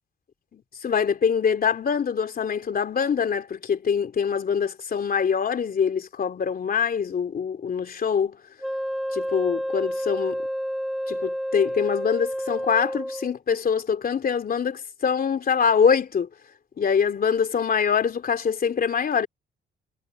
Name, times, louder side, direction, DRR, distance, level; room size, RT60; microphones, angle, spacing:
voice 1, 0.5-8.4 9.1-10.4 11.1-16.3 16.8-19.3, left 6 dB, 50° left, 3.2 m, -24 dB
Wind instrument woodwind instrument, 8.6-13.4, equal, ahead, 4.3 m, -30 dB
cardioid pair, 90°, 20 cm